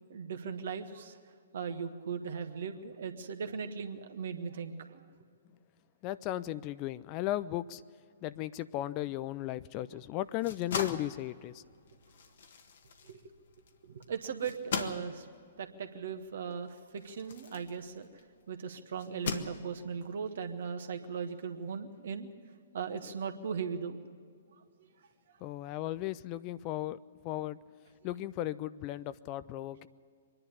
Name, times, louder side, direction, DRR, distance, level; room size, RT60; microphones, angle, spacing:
voice 1, 0.1-1.2 1.5-5.0 9.9-10.0 13.0-13.2 13.9-15.3 15.6-18.1 18.5-22.3 22.7-24.0, right 6 dB, 60° right, 7 dB, 1.6 m, -38 dB
voice 2, 6.0-7.8 8.2-11.6 25.4-27.0 27.2-27.6 28.0-29.9, left 14 dB, 35° left, 16 dB, 0.5 m, -36 dB
sound 1, 10.2-18.3 19.0-20.0, left 6 dB, 60° left, 1.5 m, -41 dB
24.5 x 10.5 x 9.9 m, 2.2 s
figure-of-eight pair, 120°, 0 cm